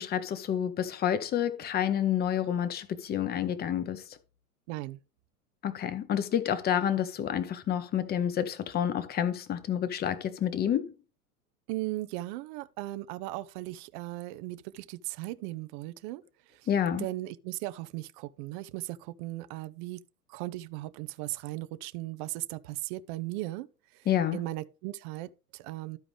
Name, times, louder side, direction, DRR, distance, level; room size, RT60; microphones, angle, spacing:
voice 1, 0.0-4.2 5.6-10.9 16.7-17.1 24.1-24.4, left 9 dB, 20° left, 0.8 m, -29 dB
voice 2, 4.7-5.0 11.7-16.7 17.0-20.0 20.3-24.1 24.3-26.0, right 17 dB, 35° right, 0.5 m, -37 dB
13.0 x 4.9 x 3.3 m
hypercardioid pair, 105°, 45 cm